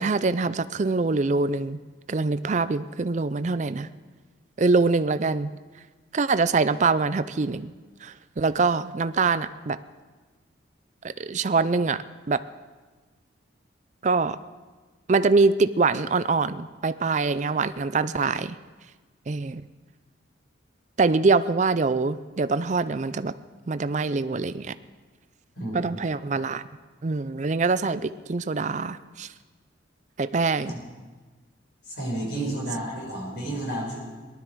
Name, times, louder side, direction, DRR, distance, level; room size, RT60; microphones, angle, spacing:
voice 1, 0.0-1.8 2.1-3.9 4.6-5.5 6.1-7.7 8.0-9.8 11.0-12.4 14.0-14.4 15.1-18.6 19.3-19.6 21.0-23.3 23.7-24.7 25.7-26.6 27.0-29.3 30.2-30.8 32.4-32.6, right 4 dB, 40° right, 13 dB, 0.4 m, -24 dB
voice 2, 25.6-25.9 30.7-30.8 31.8-34.0, right 1 dB, 60° left, -3 dB, 5.3 m, -31 dB
19.0 x 12.0 x 4.6 m, 1.3 s
head